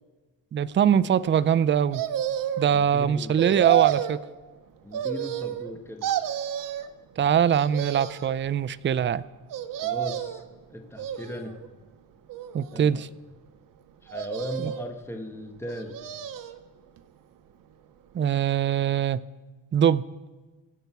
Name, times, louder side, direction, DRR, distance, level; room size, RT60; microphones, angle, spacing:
voice 1, 0.5-2.0 2.6-4.2 7.2-9.2 12.5-13.1 14.6-14.7 18.1-19.2 19.7-20.0, right 9 dB, 35° right, 16 dB, 0.5 m, -22 dB
sound 1, 1.9-2.7 3.4-4.2 4.9-5.7 6.0-6.9 7.5-8.3 9.5-10.4 11.0-11.7 12.3-13.1 14.1-14.9 15.6-16.6 17.0-17.1, right 11 dB, 75° right, 1.0 m, -30 dB
voice 2, 2.7-3.6 4.8-6.1 9.8-10.4 10.7-11.6 12.7-13.0 14.0-16.0, left 1 dB, 5° left, 4 dB, 1.6 m, -37 dB
24.0 x 8.1 x 4.6 m, 1.3 s
cardioid pair, 95°, 33 cm